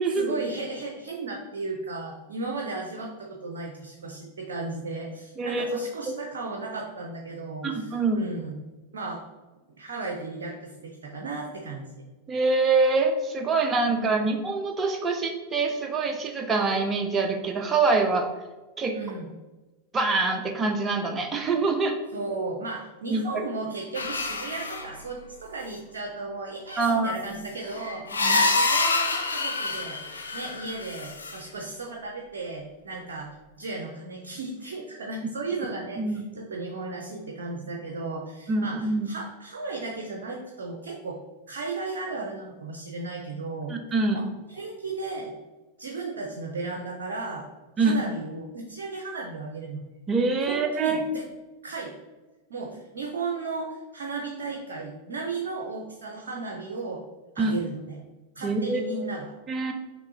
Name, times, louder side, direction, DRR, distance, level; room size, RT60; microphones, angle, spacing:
voice 1, 0.2-8.6 8.9-9.2 9.8-12.0 13.9-14.3 18.9-19.3 22.1-30.0 30.3-33.3 33.6-41.2 41.5-43.7 44.1-45.3 45.8-47.5 47.8-49.8 50.5-51.3 51.6-51.9 52.5-57.0 57.3-58.0 58.4-59.4, right 3 dB, 65° right, 1 dB, 0.6 m, -35 dB
voice 2, 5.4-5.8 7.6-8.3 12.3-18.3 18.8-19.0 19.9-22.0 23.1-23.4 26.8-27.4 28.2-28.4 36.0-36.2 38.5-39.1 43.7-44.2 47.8-48.0 50.1-51.1 57.4-57.5 58.4-59.1 59.5-59.7, right 3 dB, 20° right, 5 dB, 0.6 m, -25 dB
sound 1, 23.9-24.9 26.8-26.9 27.4-31.4, left 3 dB, 75° left, 0.5 m, -27 dB
6.0 x 3.0 x 2.7 m, 1.2 s
figure-of-eight pair, 90°, 0 cm